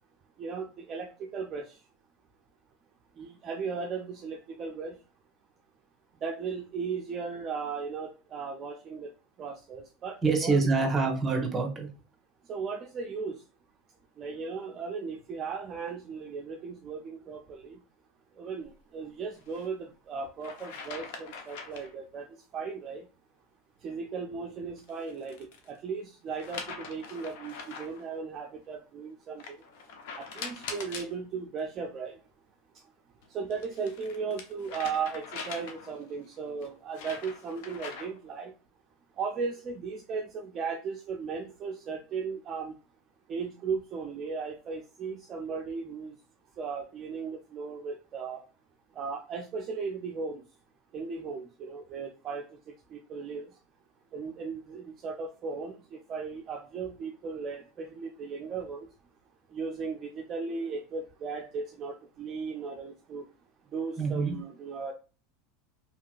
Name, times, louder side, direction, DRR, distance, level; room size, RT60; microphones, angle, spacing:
voice 1, 0.4-1.7 3.2-5.0 6.2-9.1 9.4-10.6 12.5-13.4 14.2-17.8 18.4-22.3 22.5-23.1 23.8-25.4 25.7-29.6 30.2-32.2 33.3-38.5 39.2-42.8 43.3-46.1 46.6-48.4 49.0-50.4 50.9-52.5 52.9-53.5 54.1-58.9 59.5-63.2 63.7-64.9, right 5 dB, 35° right, 2 dB, 0.4 m, -36 dB
voice 2, 10.2-11.9 64.0-64.4, right 4 dB, 20° right, 3 dB, 1.0 m, -26 dB
sound 1, 19.4-19.7 20.4-21.9 24.8-25.7 26.4-28.0 29.4-31.1 33.2-36.0 36.6-38.3, left 5 dB, 65° left, 0.7 m, -42 dB
2.9 x 2.7 x 2.4 m, 0.34 s
supercardioid pair, 110°, 0 cm